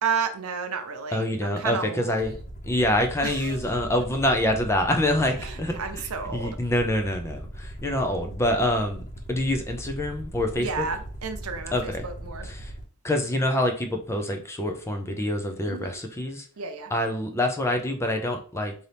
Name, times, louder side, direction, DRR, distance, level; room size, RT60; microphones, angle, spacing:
voice 1, 0.0-2.2 3.2-3.6 5.4-6.6 10.6-12.5 15.7-16.0 16.6-16.9, right 6 dB, 75° right, 0.6 m, -32 dB
voice 2, 1.1-2.4 2.6-5.7 6.3-9.0 9.3-10.9 11.7-12.1 12.4-12.7 13.0-16.5 16.9-18.7, left 1 dB, 10° left, 0.5 m, -26 dB
Aircraft, 2.2-12.8, right 1 dB, 35° left, 0.8 m, -39 dB
4.0 x 2.8 x 3.3 m
head